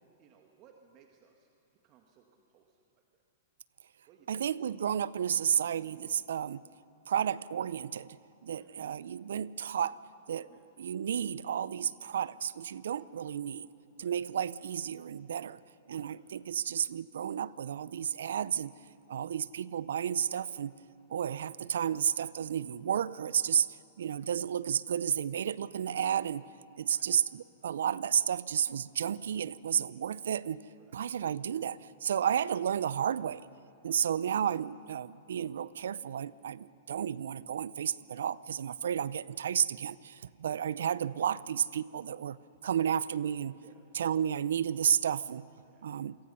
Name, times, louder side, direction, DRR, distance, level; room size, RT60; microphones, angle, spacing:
voice 1, 0.2-1.5 1.8-2.8 4.1-4.4 8.5-8.9 10.5-10.6 12.9-13.0 14.0-14.1 16.0-16.2 26.9-27.1 28.0-28.1 30.8-31.0 32.1-32.3 33.9-34.0 43.6-43.8 45.7-45.9, right 8 dB, 40° right, 3 dB, 1.8 m, -62 dB
voice 2, 4.3-6.6 7.1-8.2 8.4-10.0 10.3-10.5 10.8-13.7 14.0-15.6 15.9-18.7 19.1-20.7 21.1-23.7 24.0-26.4 26.8-30.6 30.9-33.4 33.8-42.4 42.6-43.6 43.9-45.4 45.8-46.2, right 9 dB, 75° right, 20 dB, 0.6 m, -32 dB
28.0 x 23.0 x 5.6 m, 2.8 s
hypercardioid pair, 120°, 0 cm